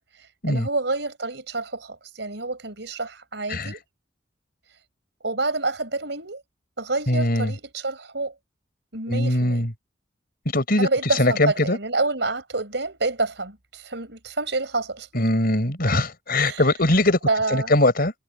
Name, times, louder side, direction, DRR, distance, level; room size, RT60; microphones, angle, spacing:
voice 1, 0.5-3.8 5.2-6.4 6.8-8.3 8.9-9.7 10.8-15.1 16.3-16.6 17.3-17.7, right 3 dB, 70° right, 5.7 m, -28 dB
voice 2, 7.1-7.5 9.1-9.7 10.5-10.9 11.2-11.8 15.1-17.2 17.5-18.1, left 1 dB, 55° left, 4.9 m, -21 dB
head